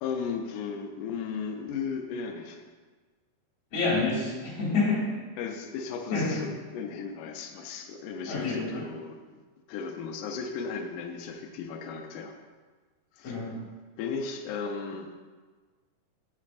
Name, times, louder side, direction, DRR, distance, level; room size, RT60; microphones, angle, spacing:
voice 1, 0.0-2.6 5.4-9.2 9.7-12.3 13.1-13.5 14.0-15.1, left 5 dB, 90° left, 4 dB, 1.8 m, -35 dB
voice 2, 3.7-5.0 6.1-6.4 8.3-8.8 13.2-13.6, left 3 dB, 45° left, -6 dB, 2.9 m, -28 dB
8.4 x 7.3 x 2.5 m, 1.4 s
omnidirectional pair, 4.3 m